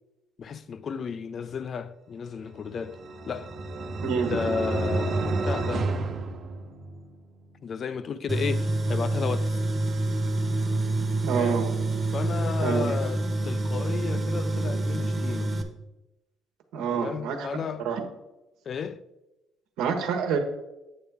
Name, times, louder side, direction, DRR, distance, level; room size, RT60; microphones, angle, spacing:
voice 1, 0.4-3.0 3.3-3.5 4.3-5.9 7.6-9.7 11.3-11.6 12.1-15.5 16.9-17.9 18.7-19.0, left 6 dB, 40° left, 0.4 m, -33 dB
sound 1, 2.6-7.2, right 3 dB, 50° right, 1.1 m, -30 dB
voice 2, 4.0-4.4 11.2-11.7 12.6-12.9 16.7-17.5 17.8-18.0 19.8-20.4, right 6 dB, 85° right, 1.2 m, -27 dB
Tools, 8.3-15.6, right 2 dB, 25° right, 1.0 m, -27 dB
8.6 x 6.7 x 3.6 m
cardioid pair, 110°, 0 cm